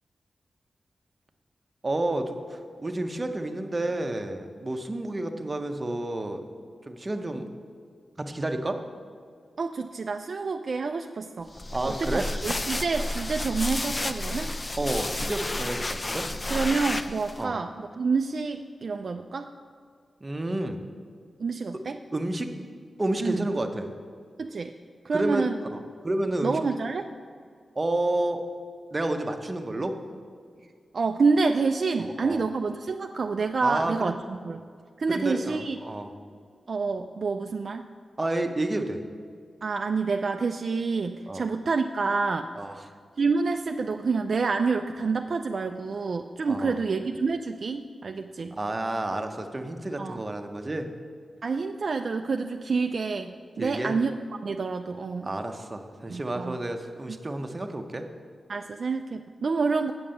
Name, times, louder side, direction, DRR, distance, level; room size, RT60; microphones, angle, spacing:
voice 1, 1.8-6.4 6.9-7.5 8.2-8.8 11.7-12.2 14.8-16.2 17.4-17.5 20.2-20.8 22.1-22.5 23.0-23.9 25.1-26.6 27.8-28.4 28.9-29.9 32.0-32.4 33.6-34.1 35.1-36.1 38.2-39.0 41.3-41.4 42.6-42.7 46.5-46.8 48.5-50.9 53.6-53.9 55.2-58.0, right 1 dB, 25° right, 5 dB, 0.7 m, -30 dB
voice 2, 9.6-11.5 11.9-14.5 16.5-19.5 21.4-22.0 23.2-23.5 24.4-24.7 25.0-25.6 26.4-27.1 30.9-34.7 35.0-35.8 36.7-37.8 39.6-42.5 43.2-48.6 50.0-50.2 51.4-54.1 54.4-55.3 56.1-56.6 57.1-57.2 58.5-59.9, right 4 dB, 50° right, 6 dB, 0.3 m, -28 dB
sound 1, 11.5-17.4, left 1 dB, 20° left, 0.4 m, -31 dB
7.8 x 7.2 x 7.5 m, 2.1 s
wide cardioid pair, 150°, 0 cm